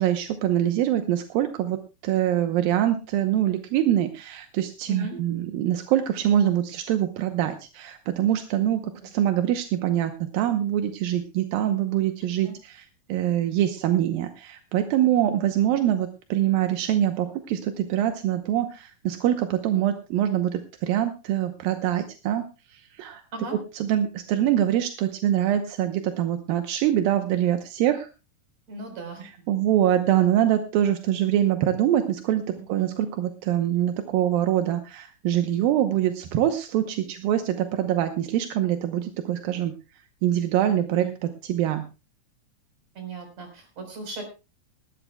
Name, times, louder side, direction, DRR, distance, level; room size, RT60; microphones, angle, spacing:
voice 1, 0.0-1.8 2.0-23.2 23.7-28.1 29.2-41.8, right 11 dB, 85° right, 7 dB, 2.7 m, -24 dB
voice 2, 28.7-29.3 32.6-32.9 40.9-41.1 43.0-44.2, right 2 dB, 50° right, 5 dB, 5.5 m, -37 dB
19.5 x 15.5 x 2.3 m, 0.30 s
omnidirectional pair, 4.1 m